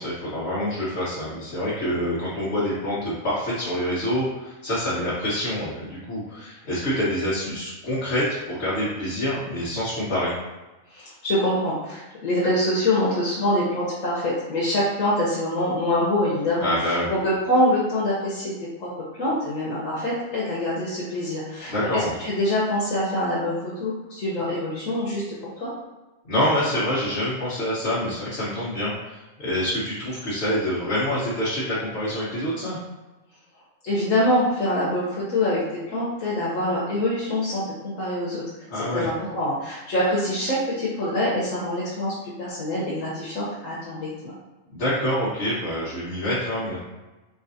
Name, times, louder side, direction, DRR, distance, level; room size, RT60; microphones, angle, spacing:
voice 1, 0.0-10.3 16.6-17.1 21.7-22.1 26.2-32.8 38.7-39.0 44.7-46.8, left 1 dB, 55° left, -9 dB, 1.4 m, -26 dB
voice 2, 10.9-18.5 18.8-18.9 19.2-25.7 33.8-38.4 38.7-44.3, left 1 dB, 80° left, -7 dB, 1.3 m, -25 dB
4.3 x 3.8 x 2.7 m, 1.1 s
omnidirectional pair, 1.4 m